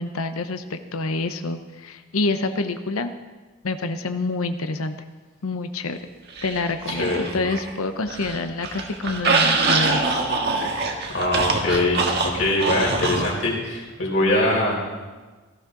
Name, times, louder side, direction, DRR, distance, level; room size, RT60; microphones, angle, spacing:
voice 1, 0.0-3.1 3.6-4.9 5.4-6.0 6.4-10.4, left 3 dB, 85° left, 8 dB, 0.8 m, -27 dB
sound 1, 6.4-7.7 8.0-13.4, right 3 dB, 50° right, 1.6 m, -24 dB
voice 2, 6.9-7.3 11.1-14.9, left 1 dB, 60° left, -3 dB, 4.3 m, -23 dB
17.5 x 14.5 x 3.9 m, 1.3 s
head